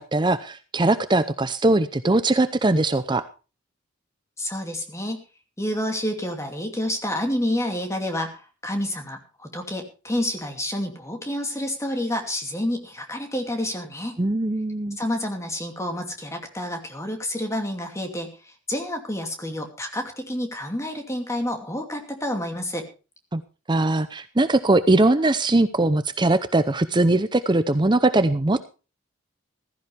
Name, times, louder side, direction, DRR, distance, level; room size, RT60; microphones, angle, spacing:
voice 1, 0.0-3.2 14.2-15.0 23.3-23.4 23.7-28.7, right 2 dB, 25° right, 12 dB, 0.7 m, -21 dB
voice 2, 4.4-5.2 5.6-14.2 15.0-22.9, left 1 dB, 15° left, 4 dB, 2.5 m, -29 dB
15.0 x 14.5 x 3.4 m, 0.33 s
head